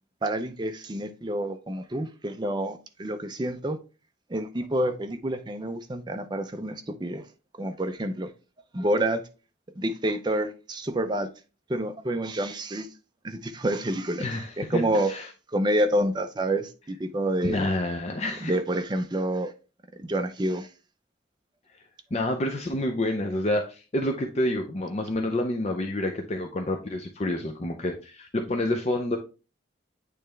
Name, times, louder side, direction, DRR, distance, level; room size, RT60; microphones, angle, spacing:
voice 1, 0.2-3.8 4.3-7.3 7.6-8.3 8.7-9.3 9.8-11.3 11.7-12.9 13.2-15.1 15.5-17.6 18.4-19.5 20.0-20.7, right 1 dB, 20° right, 0.5 m, -28 dB
voice 2, 14.2-14.8 15.1-15.3 17.4-18.5 22.1-29.2, left 1 dB, 35° left, 0.5 m, -28 dB
8.6 x 3.3 x 3.3 m
head